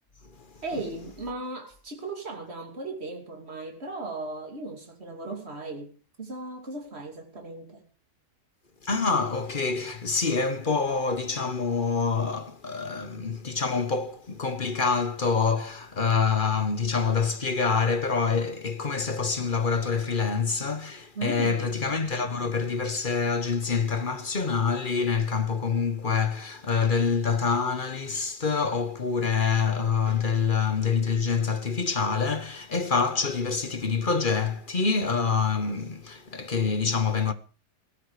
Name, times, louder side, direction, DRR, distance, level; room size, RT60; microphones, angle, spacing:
voice 1, 0.6-5.9 6.2-7.9 21.1-21.8, right 2 dB, 40° right, 3.0 m, -36 dB
voice 2, 8.8-37.3, left 5 dB, 35° left, 1.1 m, -26 dB
17.5 x 12.5 x 5.0 m
omnidirectional pair, 1.8 m